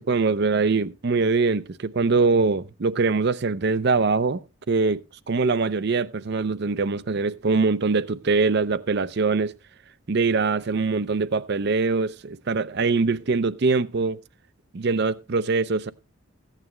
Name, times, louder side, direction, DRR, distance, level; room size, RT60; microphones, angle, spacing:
voice 1, 0.0-5.0 5.3-9.5 10.1-14.2 14.7-15.9, right 4 dB, 50° right, 0.5 m, -23 dB
15.0 x 9.0 x 3.1 m
head